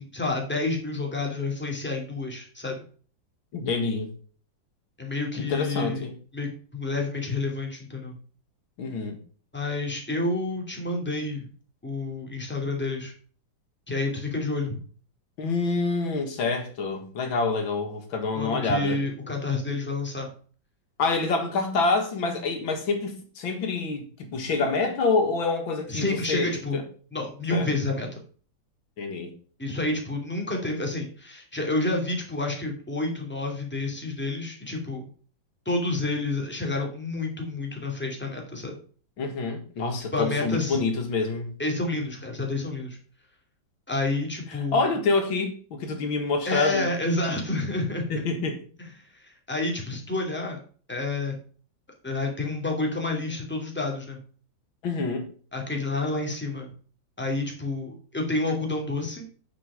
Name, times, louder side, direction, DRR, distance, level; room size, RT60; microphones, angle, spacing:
voice 1, 0.0-2.8 5.0-6.0 6.3-8.2 9.5-11.5 11.8-13.1 13.9-14.8 18.3-20.3 25.9-26.8 27.1-28.1 29.6-35.0 35.7-38.7 40.1-40.8 41.6-43.0 43.9-44.9 46.4-48.2 48.8-50.6 50.9-51.4 52.0-54.2 55.5-56.7 57.2-59.3, left 2 dB, 5° left, 2.4 m, -29 dB
voice 2, 3.5-4.1 5.4-6.1 8.8-9.2 15.4-19.0 21.0-26.8 27.5-27.7 29.0-29.3 39.2-41.5 44.7-46.9 48.1-48.6 54.8-55.3, left 3 dB, 85° left, 2.4 m, -27 dB
9.3 x 6.2 x 4.9 m
omnidirectional pair, 2.1 m